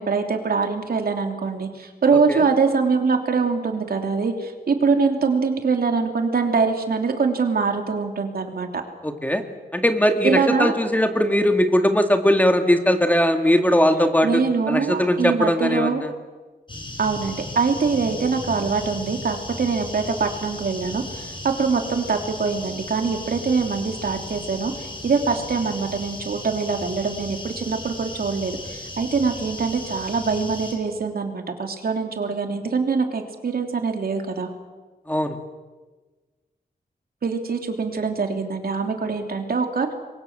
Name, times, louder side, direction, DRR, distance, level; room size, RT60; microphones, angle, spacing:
voice 1, 0.0-8.7 10.2-10.7 14.2-16.0 17.0-34.5 37.2-39.9, right 4 dB, 70° right, 4 dB, 3.1 m, -23 dB
voice 2, 9.0-9.4 9.7-14.4 14.7-16.1 35.1-35.4, equal, 10° left, 6 dB, 2.0 m, -19 dB
sound 1, 16.7-30.7, left 1 dB, 30° left, 7.1 m, -36 dB
28.0 x 23.0 x 7.5 m, 1.3 s
wide cardioid pair, 130°, 16 cm